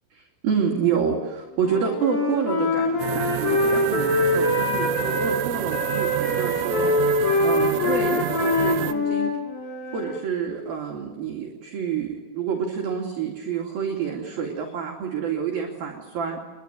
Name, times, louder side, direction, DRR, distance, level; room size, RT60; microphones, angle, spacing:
voice 1, 0.2-6.9 7.4-9.3 9.9-16.4, right 7 dB, 50° right, 1 dB, 4.2 m, -28 dB
Wind instrument woodwind instrument, 1.6-5.4 5.7-10.2, left 2 dB, 60° left, 7.3 m, -24 dB
sound 1, 3.0-8.9, right 13 dB, 75° right, 3.0 m, -29 dB
26.0 x 23.0 x 9.3 m, 1.1 s
omnidirectional pair, 5.8 m